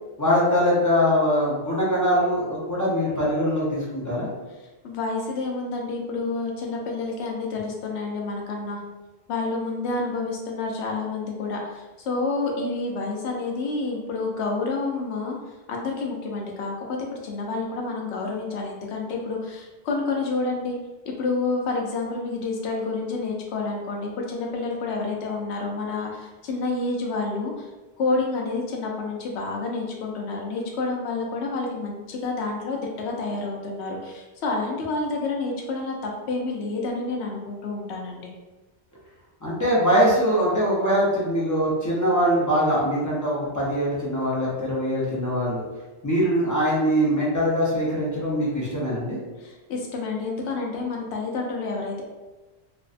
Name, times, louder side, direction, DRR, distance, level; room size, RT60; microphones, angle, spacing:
voice 1, 0.2-4.3 39.4-45.6 46.0-49.2, equal, 25° left, -6 dB, 0.4 m, -22 dB
voice 2, 4.8-8.8 9.3-15.4 15.7-20.8 21.1-27.7 28.0-38.3 49.4-52.0, left 3 dB, 75° left, 0 dB, 0.8 m, -29 dB
2.6 x 2.1 x 2.4 m, 1.2 s
omnidirectional pair, 1.2 m